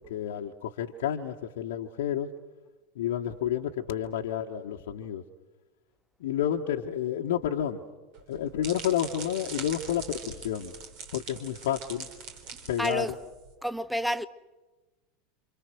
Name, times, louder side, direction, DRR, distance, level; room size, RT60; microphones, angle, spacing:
voice 1, 0.0-2.3 2.9-5.2 6.2-7.8 8.3-10.7 11.1-12.1 12.7-13.1, left 10 dB, 60° left, 1.4 m, -30 dB
sound 1, 8.1-13.5, right 5 dB, 50° right, 3.9 m, -42 dB
voice 2, 12.8-13.1 13.6-14.3, equal, ahead, 1.0 m, -29 dB
29.0 x 27.5 x 6.3 m
figure-of-eight pair, 80°, 0 cm